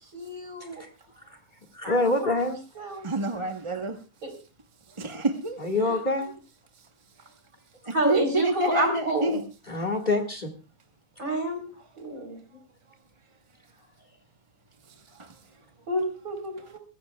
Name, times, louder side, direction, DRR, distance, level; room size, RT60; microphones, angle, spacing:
voice 1, 0.1-0.8 1.8-2.0 2.2-2.4 2.8-3.1 4.2-4.3 7.9-9.4 11.2-11.6 12.0-12.4 15.9-16.8, right 1 dB, 60° right, 5 dB, 4.4 m, -29 dB
voice 2, 1.7-2.6 5.6-6.4 9.7-10.5, left 2 dB, 30° left, 6 dB, 1.9 m, -26 dB
voice 3, 3.0-3.9 5.0-5.6 8.0-9.4, right 2 dB, 25° right, 5 dB, 1.0 m, -27 dB
22.0 x 15.5 x 2.3 m, 0.33 s
omnidirectional pair, 1.6 m